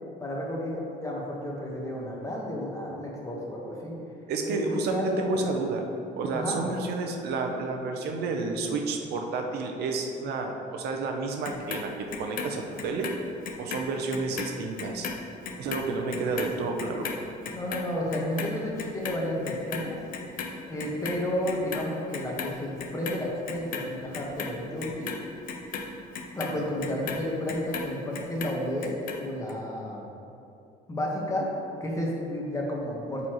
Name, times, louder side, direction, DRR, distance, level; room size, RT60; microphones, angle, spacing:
voice 1, 0.2-4.0 4.5-5.4 6.3-6.6 17.5-20.0 20.7-25.1 26.3-28.9 29.2-30.0 30.9-31.5 31.8-33.3, left 1 dB, 20° left, -2 dB, 1.3 m, -32 dB
voice 2, 4.3-5.8 6.2-13.1 13.6-15.1 15.6-17.1, right 3 dB, 75° right, 3 dB, 0.7 m, -30 dB
Clock, 11.4-13.8 14.1-20.5 20.8-21.9 22.1-23.1 23.5-27.9 28.2-29.2 29.5-29.6, left 6 dB, 55° left, 0.7 m, -36 dB
9.5 x 4.1 x 3.0 m, 2.6 s
cardioid pair, 110°, 17 cm